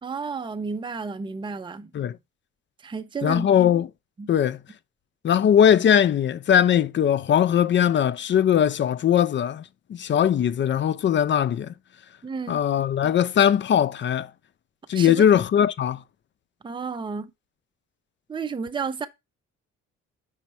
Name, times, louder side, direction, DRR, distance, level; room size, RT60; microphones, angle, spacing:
voice 1, 0.0-1.9 2.8-3.7 4.2-4.3 12.2-12.6 14.9-15.4 16.6-17.3 18.3-19.1, right 5 dB, 15° right, 0.6 m, -32 dB
voice 2, 3.2-3.9 4.3-4.6 5.2-9.6 9.9-11.7 12.5-14.3 14.9-16.0, left 9 dB, 40° left, 0.4 m, -20 dB
5.6 x 4.5 x 4.2 m
cardioid pair, 90°, 30 cm